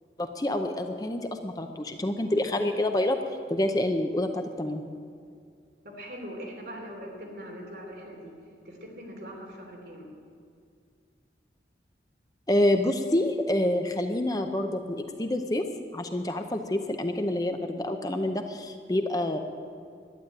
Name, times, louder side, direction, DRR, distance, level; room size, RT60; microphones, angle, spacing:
voice 1, 0.2-3.2 3.5-4.8 12.5-15.7 15.9-19.4, left 1 dB, 20° left, 6 dB, 0.6 m, -27 dB
voice 2, 5.8-8.3 8.6-10.1, equal, 65° right, -1 dB, 3.2 m, -41 dB
11.5 x 10.0 x 8.8 m, 2.3 s
head